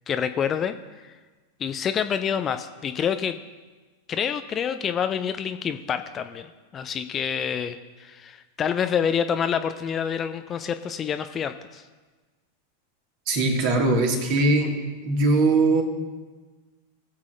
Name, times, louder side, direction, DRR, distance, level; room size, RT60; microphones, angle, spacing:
voice 1, 0.1-0.7 1.0-1.1 1.6-3.3 4.1-11.8, left 7 dB, 25° left, 10 dB, 0.4 m, -27 dB
voice 2, 13.3-15.8, right 2 dB, 45° right, 2 dB, 2.0 m, -21 dB
20.5 x 7.3 x 2.5 m, 1.3 s
figure-of-eight pair, 90°, 0 cm